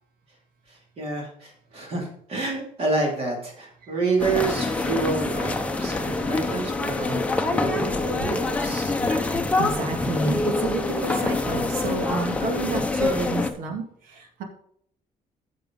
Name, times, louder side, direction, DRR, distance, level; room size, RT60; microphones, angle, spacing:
voice 1, 0.7-9.0, right 3 dB, 40° right, 0 dB, 2.6 m, -29 dB
sound 1, 4.2-13.5, left 3 dB, 10° left, 0.8 m, -25 dB
voice 2, 8.8-14.4, right 3 dB, 80° right, 4 dB, 2.1 m, -30 dB
10.5 x 6.7 x 3.8 m, 0.66 s
cardioid pair, 170°, 14 cm